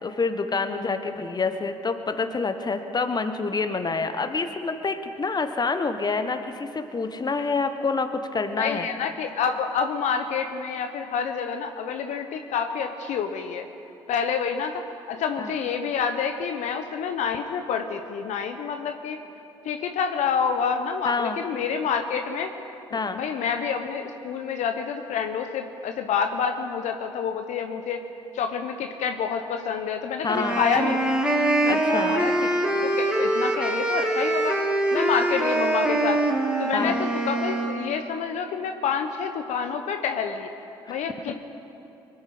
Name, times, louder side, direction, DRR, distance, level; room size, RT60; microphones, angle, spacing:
voice 1, 0.0-8.9 15.4-15.5 21.0-21.4 22.9-23.2 30.2-30.6 31.7-32.2 36.7-37.0 40.9-41.0, left 4 dB, 30° left, 8 dB, 1.3 m, -27 dB
voice 2, 0.6-1.0 8.6-13.7 14.1-19.2 19.6-22.5 22.9-28.0 28.3-31.2 31.6-34.6 34.9-40.5 40.9-41.4, left 6 dB, 65° left, 6 dB, 0.9 m, -28 dB
sound 1, 30.3-37.8, right 2 dB, 5° right, 2.2 m, -24 dB
23.5 x 8.9 x 6.1 m, 2.8 s
hypercardioid pair, 50°, 13 cm